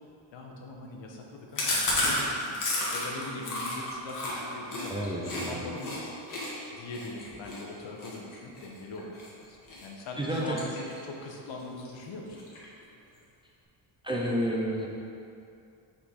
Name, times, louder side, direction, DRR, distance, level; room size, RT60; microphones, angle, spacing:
voice 1, 0.3-2.3 2.9-6.1 6.7-9.1 9.5-12.5, left 2 dB, 70° left, 0 dB, 1.0 m, -41 dB
Chewing mastication, 1.6-5.5 5.8-6.0 6.3-9.3 9.7-10.0 10.3-11.2 11.5-11.6 11.9-12.0 12.3-12.8, left 1 dB, 45° left, 1.4 m, -32 dB
voice 2, 4.9-5.6 10.2-10.6 14.0-14.9, equal, 10° right, -4 dB, 0.5 m, -30 dB
5.9 x 4.2 x 4.8 m, 2.5 s
cardioid pair, 155°, 46 cm